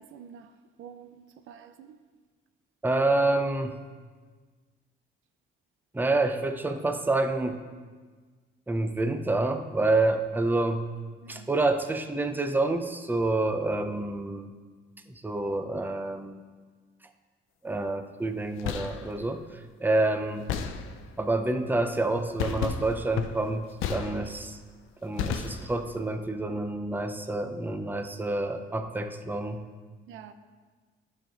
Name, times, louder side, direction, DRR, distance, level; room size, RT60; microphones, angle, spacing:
voice 1, 0.0-2.0 11.2-11.5 30.1-30.3, right 8 dB, 85° right, 0.5 m, -48 dB
voice 2, 2.8-3.8 5.9-7.6 8.7-10.8 11.3-14.5 15.1-16.4 17.6-20.5 21.2-24.6 25.0-29.6, right 2 dB, 10° right, 0.6 m, -28 dB
sound 1, 18.4-19.1 20.5-21.2 22.4-24.6 25.2-26.0, left 7 dB, 90° left, 0.6 m, -33 dB
11.5 x 5.2 x 3.7 m
cardioid pair, 90°, 20 cm